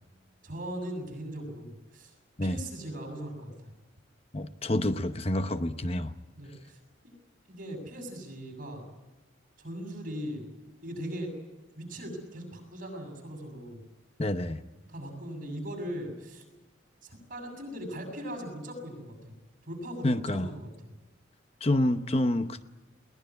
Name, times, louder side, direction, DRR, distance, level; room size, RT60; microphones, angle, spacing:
voice 1, 0.4-2.1 2.4-3.5 6.4-6.8 7.5-8.9 9.6-10.5 10.8-11.3 11.8-13.8 14.9-16.4 17.0-19.3 19.6-20.9, equal, 45° right, 5 dB, 7.2 m, -39 dB
voice 2, 4.3-6.1 14.2-14.6 20.0-20.5 21.6-22.7, left 1 dB, 30° left, 10 dB, 0.8 m, -28 dB
22.0 x 19.0 x 9.6 m, 1.1 s
head